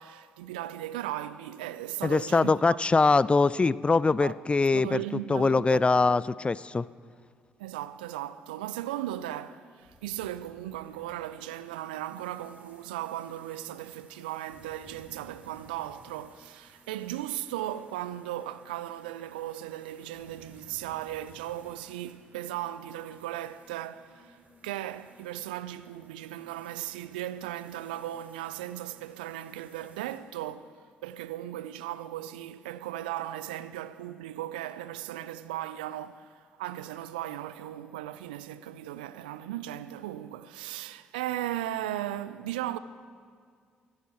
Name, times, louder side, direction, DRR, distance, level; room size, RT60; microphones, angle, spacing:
voice 1, 0.0-2.8 4.1-4.3 4.7-5.8 6.1-6.2 7.6-24.4 24.6-42.8, right 13 dB, 75° right, 0.4 m, -37 dB
voice 2, 2.0-5.0 5.3-6.9, left 3 dB, 20° left, 0.3 m, -23 dB
sound 1, 9.7-11.2 14.4-16.2 20.0-21.7, left 1 dB, 85° left, 3.4 m, -58 dB
sound 2, 10.7-30.2, right 2 dB, 30° right, 2.7 m, -60 dB
24.0 x 10.5 x 4.5 m
figure-of-eight pair, 45°, 5 cm